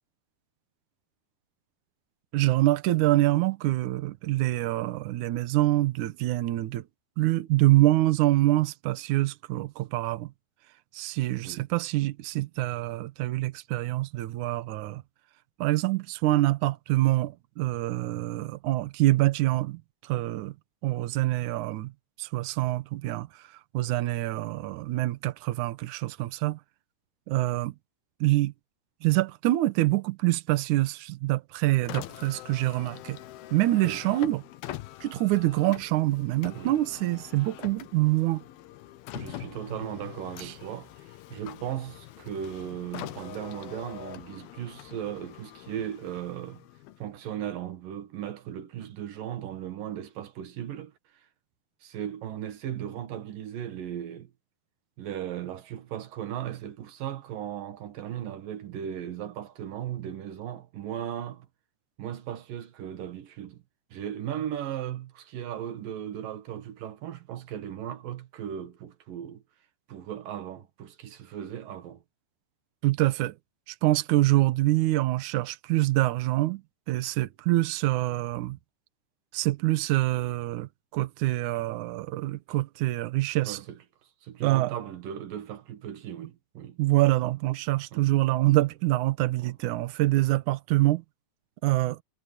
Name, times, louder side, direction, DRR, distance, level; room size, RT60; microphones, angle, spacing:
voice 1, 2.3-6.8 7.2-10.3 10.9-15.0 15.6-20.5 20.8-21.9 22.2-23.4 23.7-26.6 27.3-27.8 28.2-28.5 29.0-33.2 33.5-34.4 35.0-38.4 40.4-40.5 72.8-73.4 73.7-76.6 76.9-78.6 79.3-83.6 84.4-84.7 86.8-91.0 91.6-92.0, right 17 dB, 85° right, 1.7 m, -25 dB
Car, 31.8-47.2, left 14 dB, 75° left, 2.6 m, -44 dB
voice 2, 39.1-46.6 47.0-51.3 51.8-54.3 55.0-61.5 62.0-63.6 63.9-69.4 69.9-72.0 83.4-83.8 84.2-86.8 87.9-88.1 89.4-89.6, right 10 dB, 60° right, 3.1 m, -37 dB
omnidirectional pair, 5.0 m